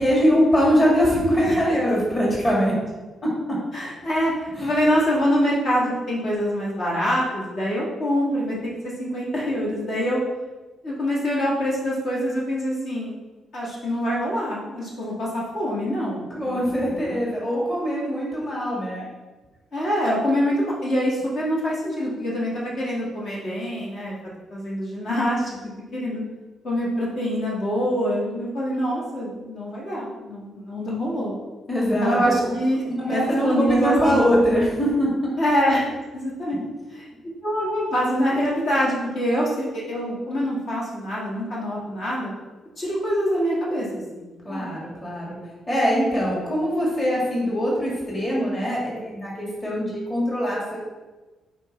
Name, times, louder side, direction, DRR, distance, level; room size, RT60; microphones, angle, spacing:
voice 1, 0.0-2.7 3.2-3.6 4.6-4.7 16.4-19.1 31.7-32.5 33.0-35.1 44.4-45.4 45.7-50.8, equal, 20° left, -5 dB, 1.8 m, -22 dB
voice 2, 3.7-8.6 9.0-10.2 10.8-13.1 13.5-17.3 19.7-24.2 24.5-25.6 25.9-26.2 26.6-31.3 31.8-34.2 35.4-35.8 36.1-36.6 36.9-37.1 37.4-42.3 42.8-44.7, equal, 50° left, -6 dB, 1.8 m, -25 dB
8.0 x 4.3 x 3.3 m, 1.2 s
cardioid pair, 150°, 0 cm